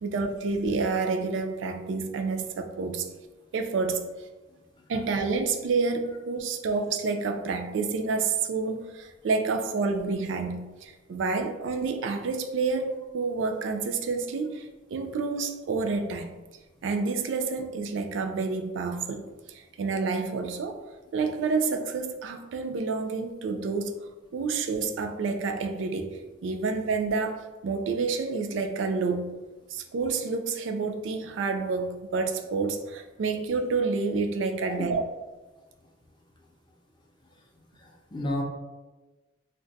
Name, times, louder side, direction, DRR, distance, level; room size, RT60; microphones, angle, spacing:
voice 1, 0.0-3.1 3.5-4.0 4.9-16.4 16.8-20.8 21.1-23.9 24.3-29.3 29.7-35.0, right 4 dB, 70° right, 5 dB, 0.3 m, -29 dB
voice 2, 37.2-38.4, left 1 dB, 25° left, 1 dB, 0.4 m, -35 dB
2.5 x 2.2 x 3.8 m, 1.2 s
head